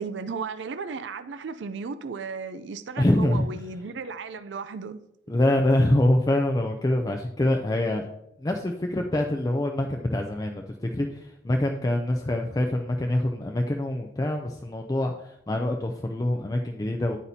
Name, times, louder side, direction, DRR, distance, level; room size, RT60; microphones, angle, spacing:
voice 1, 0.0-5.0 5.3-5.4, right 5 dB, 85° right, 0.5 m, -35 dB
voice 2, 3.0-3.6 5.3-8.1 8.4-17.2, left 1 dB, 20° left, 0.4 m, -25 dB
8.8 x 8.3 x 2.7 m
head